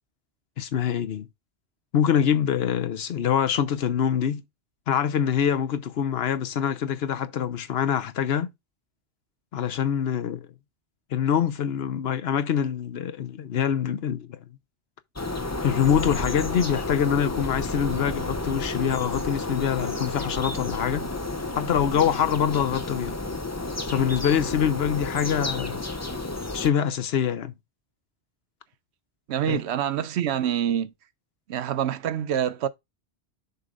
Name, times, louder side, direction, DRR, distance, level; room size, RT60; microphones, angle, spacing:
voice 1, 0.6-1.3 1.9-4.4 4.9-8.5 9.5-10.5 11.1-14.4 15.6-21.1 21.6-23.2 23.9-25.8 26.5-27.5 29.5-29.6, left 8 dB, 70° left, 1.0 m, -25 dB
sound 1, 15.2-26.7, left 2 dB, 15° left, 0.7 m, -31 dB
voice 2, 29.3-30.9 31.5-32.7, right 9 dB, 90° right, 0.9 m, -26 dB
6.8 x 3.8 x 5.2 m
omnidirectional pair, 1.1 m